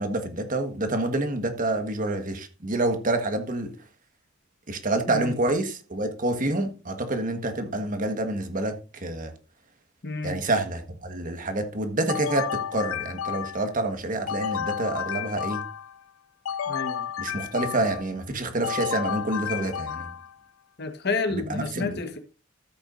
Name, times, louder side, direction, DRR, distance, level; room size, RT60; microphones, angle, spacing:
voice 1, 0.0-3.7 4.7-9.3 10.2-15.6 17.2-20.1 21.3-22.0, right 2 dB, 40° right, 1.5 m, -28 dB
voice 2, 10.0-10.4 16.7-17.0 20.8-22.2, left 3 dB, 55° left, 1.4 m, -30 dB
sound 1, 12.1-13.7 14.3-16.0 16.4-18.1 18.6-20.3, left 8 dB, 85° left, 0.4 m, -31 dB
13.0 x 8.5 x 2.6 m
head